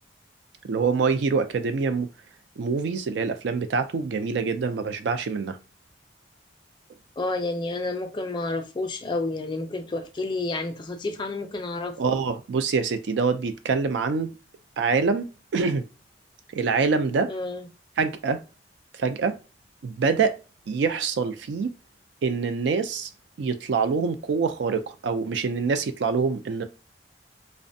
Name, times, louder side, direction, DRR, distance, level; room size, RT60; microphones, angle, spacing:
voice 1, 0.6-2.1 2.6-5.6 12.0-14.3 14.8-15.8 16.5-17.3 18.0-18.4 19.0-19.4 19.8-20.4 20.7-21.7 22.2-23.1 23.4-26.6, right 5 dB, 75° right, 0.4 m, -25 dB
voice 2, 7.2-12.0 17.3-17.7, left 2 dB, 25° left, 0.4 m, -30 dB
2.4 x 2.1 x 2.6 m
head